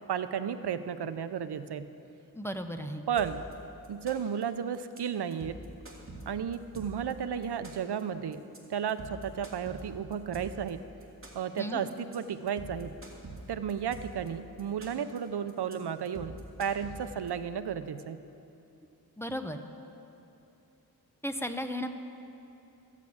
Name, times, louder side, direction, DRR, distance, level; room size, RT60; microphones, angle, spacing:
voice 1, 0.1-1.9 3.1-3.4 3.9-5.6 6.2-8.4 8.7-10.9 11.3-13.0 13.5-18.2, right 8 dB, 85° right, 11 dB, 0.6 m, -33 dB
voice 2, 2.3-3.0 11.6-11.8 19.2-19.6 21.2-21.9, equal, 5° left, 6 dB, 0.6 m, -35 dB
sound 1, 3.2-3.5 3.8-4.4 4.7-5.0 5.3-7.1 7.4-8.0 8.3-8.6 8.9-10.7 11.0-11.6 11.9-12.2 12.5-14.3 14.6-15.2 15.5-15.7 16.0-17.3, right 2 dB, 35° right, 2.2 m, -45 dB
14.0 x 8.4 x 8.5 m, 2.8 s
wide cardioid pair, 110°, 39 cm